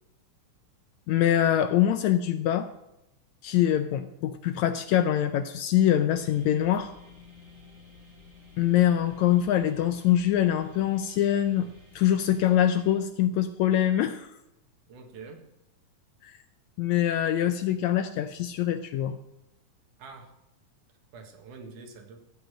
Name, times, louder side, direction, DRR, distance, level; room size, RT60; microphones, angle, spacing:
voice 1, 1.1-2.7 3.4-6.9 8.6-11.7 12.0-14.3 16.2-16.3 16.8-19.2, left 11 dB, 75° left, 9 dB, 1.7 m, -24 dB
sound 1, 6.1-13.0, left 4 dB, 30° right, 4.1 m, -53 dB
voice 2, 14.9-15.5 20.0-20.3 21.1-22.2, right 4 dB, 75° right, 4 dB, 3.1 m, -46 dB
15.0 x 5.2 x 8.9 m, 0.90 s
omnidirectional pair, 3.7 m